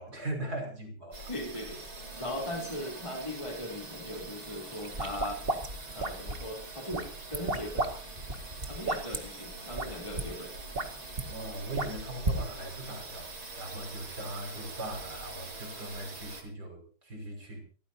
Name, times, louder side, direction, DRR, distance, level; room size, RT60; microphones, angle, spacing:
voice 1, 0.0-1.2 11.3-17.6, right 1 dB, 45° right, 2 dB, 6.3 m, -39 dB
sound 1, 1.1-16.4, right 3 dB, 70° right, 5.7 m, -44 dB
voice 2, 1.3-1.8 2.2-5.4 5.9-7.9 8.7-10.5, left 1 dB, 15° left, 1 dB, 3.3 m, -38 dB
sound 2, 4.8-6.5 6.9-7.9 8.2-9.2 9.7-9.9 10.2-10.3 10.6-11.2 11.8-12.4, right 2 dB, 30° right, 2.0 m, -32 dB
29.5 x 14.5 x 2.8 m, 0.40 s
omnidirectional pair, 2.3 m